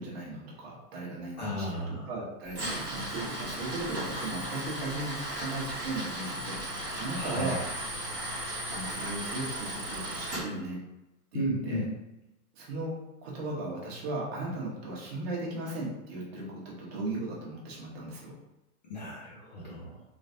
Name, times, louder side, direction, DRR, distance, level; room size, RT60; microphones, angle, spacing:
voice 1, 0.0-7.6 8.7-10.8 11.3-11.8 12.5-18.3, right 2 dB, 40° right, -3 dB, 1.1 m, -37 dB
voice 2, 1.4-2.1 7.1-7.6 11.3-11.9 18.9-20.0, equal, 30° left, -4 dB, 0.4 m, -34 dB
Tools, 2.4-10.4, right 1 dB, 20° right, 1.3 m, -36 dB
3.2 x 3.0 x 2.7 m, 0.94 s
hypercardioid pair, 155°, 45 cm